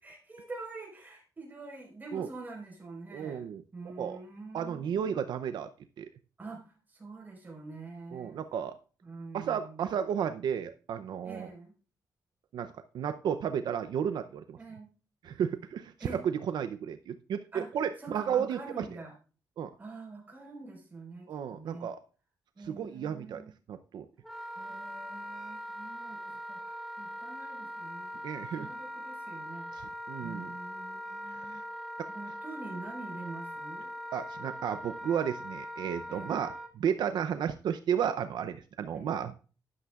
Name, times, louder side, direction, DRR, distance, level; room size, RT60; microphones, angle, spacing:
voice 1, 0.0-5.3 6.4-8.4 9.0-10.0 11.2-11.7 14.6-14.9 16.0-16.2 17.5-17.7 18.0-19.1 19.8-21.9 22.5-23.5 24.6-28.1 28.5-29.7 30.2-33.9 36.1-36.4 38.9-39.1, right 3 dB, 25° right, -1 dB, 4.5 m, -46 dB
voice 2, 3.1-3.6 4.0-4.2 4.5-5.7 6.0-6.1 8.1-8.8 9.3-11.5 12.5-14.6 15.2-16.2 16.5-18.9 19.6-19.7 21.3-22.0 22.7-23.4 23.7-24.1 28.2-28.7 29.7-30.5 31.3-31.6 32.0-32.1 34.1-39.3, right 8 dB, 80° right, 10 dB, 0.6 m, -33 dB
Wind instrument woodwind instrument, 24.2-36.7, equal, ahead, 1.8 m, -41 dB
12.0 x 11.0 x 2.4 m, 0.37 s
wide cardioid pair, 145°, 7 cm